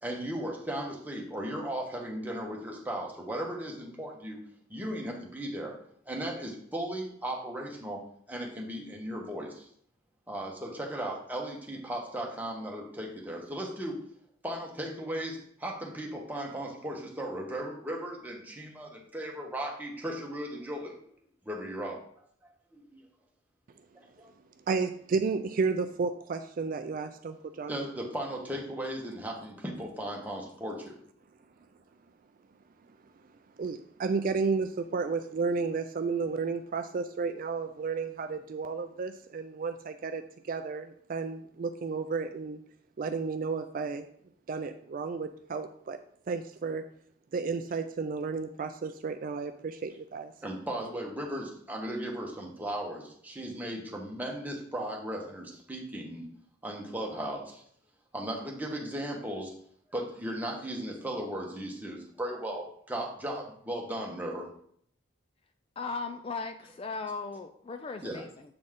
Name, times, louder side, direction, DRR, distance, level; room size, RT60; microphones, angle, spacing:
voice 1, 0.0-4.4 4.7-5.8 6.1-8.0 8.3-9.7 10.3-14.0 14.4-20.9 21.4-22.0 22.7-23.0 23.9-24.3 27.7-31.0 50.4-56.2 56.6-57.6 58.1-59.5 59.9-64.5 68.0-68.2, right 1 dB, 10° right, -1 dB, 1.2 m, -36 dB
voice 2, 24.7-27.7 33.6-40.2 40.5-42.6 43.0-44.0 44.5-46.0 46.3-46.8 47.3-50.3, right 4 dB, 45° right, 8 dB, 0.4 m, -32 dB
voice 3, 65.8-68.5, left 4 dB, 30° left, 7 dB, 0.3 m, -37 dB
7.7 x 4.1 x 3.6 m, 0.63 s
head